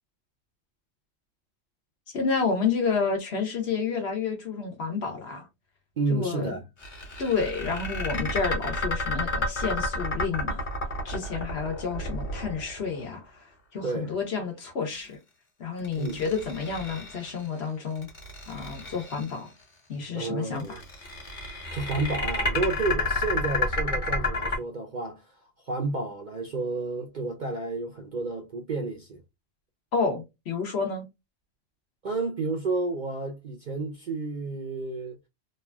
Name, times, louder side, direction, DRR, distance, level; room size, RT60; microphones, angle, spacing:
voice 1, 2.1-5.5 6.1-6.5 7.2-10.7 11.0-15.2 15.6-18.1 18.5-19.5 19.9-20.8 29.9-31.1, left 5 dB, 60° left, 1.1 m, -30 dB
voice 2, 6.0-6.6 13.8-14.1 16.0-16.2 20.1-20.8 21.7-25.3 25.6-29.2 32.0-35.2, right 3 dB, 50° right, 0.6 m, -31 dB
sound 1, 6.8-13.0 15.8-17.4 18.0-19.3 20.6-24.6, left 2 dB, 40° left, 1.4 m, -30 dB
3.1 x 2.4 x 2.2 m
omnidirectional pair, 1.3 m